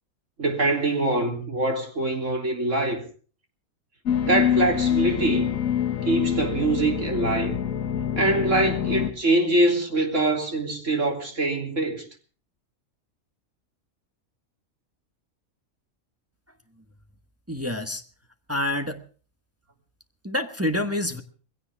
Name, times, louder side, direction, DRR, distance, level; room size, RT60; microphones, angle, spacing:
voice 1, 0.4-3.0 4.2-5.5 6.0-7.6 8.2-12.1, right 2 dB, 60° right, 3.6 m, -24 dB
sound 1, 4.1-9.1, left 9 dB, 70° left, 1.6 m, -25 dB
voice 2, 17.5-18.0 18.5-19.0 20.2-21.2, left 1 dB, 10° right, 1.2 m, -27 dB
22.0 x 16.5 x 3.5 m
omnidirectional pair, 1.5 m